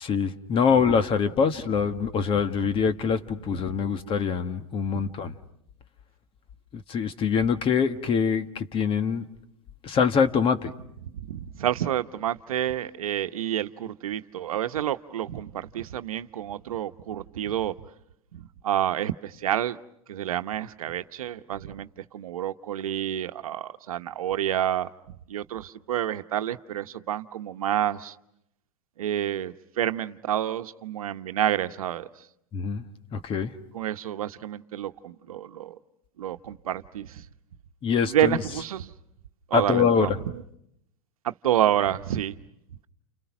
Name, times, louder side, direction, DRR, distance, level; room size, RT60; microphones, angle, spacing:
voice 1, 0.0-5.3 6.7-9.2 9.8-10.7 32.5-32.8 33.1-33.5 37.8-38.4 39.5-40.1, left 6 dB, 30° left, 10 dB, 1.5 m, -24 dB
voice 2, 11.0-17.7 18.3-19.8 20.1-24.9 25.3-28.1 29.0-32.1 33.7-35.8 36.2-37.2 38.0-38.9 39.5-40.4 41.2-42.4, right 11 dB, 80° right, 9 dB, 1.1 m, -29 dB
30.0 x 29.5 x 6.1 m, 0.77 s
hypercardioid pair, 120°, 18 cm